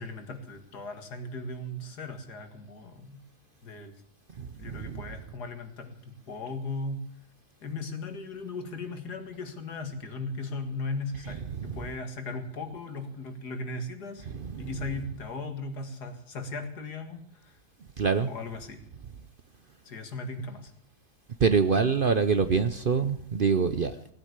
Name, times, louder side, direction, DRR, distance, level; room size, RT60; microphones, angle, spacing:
voice 1, 0.0-3.2 3.6-4.0 4.6-7.0 7.6-14.3 14.6-17.6 18.3-18.8 19.8-20.7, left 3 dB, 85° left, 7 dB, 2.4 m, -37 dB
voice 2, 4.4-5.0 11.6-11.8 14.3-14.7 18.0-18.3 21.4-23.9, right 5 dB, 50° right, 11 dB, 0.7 m, -25 dB
17.5 x 9.1 x 8.1 m, 0.71 s
omnidirectional pair, 1.7 m